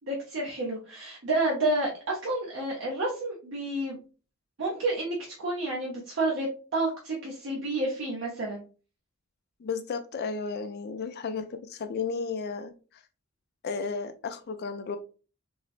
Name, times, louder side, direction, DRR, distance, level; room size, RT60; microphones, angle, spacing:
voice 1, 0.0-4.0 4.6-8.6, right 2 dB, 60° right, -3 dB, 0.7 m, -30 dB
voice 2, 9.6-12.7 13.6-15.0, left 5 dB, 50° left, 9 dB, 0.4 m, -33 dB
3.9 x 2.0 x 2.4 m, 0.35 s
head